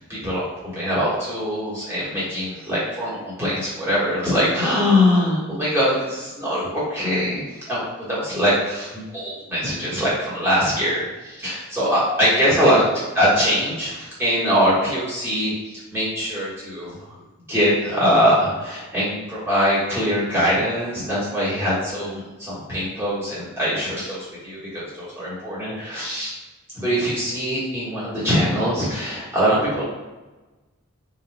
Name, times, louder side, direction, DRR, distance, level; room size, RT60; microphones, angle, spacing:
voice 1, 0.1-12.8 13.1-16.9 17.5-26.3 26.7-29.8, equal, 10° right, -10 dB, 1.4 m, -22 dB
4.0 x 3.1 x 2.2 m, 1.1 s
head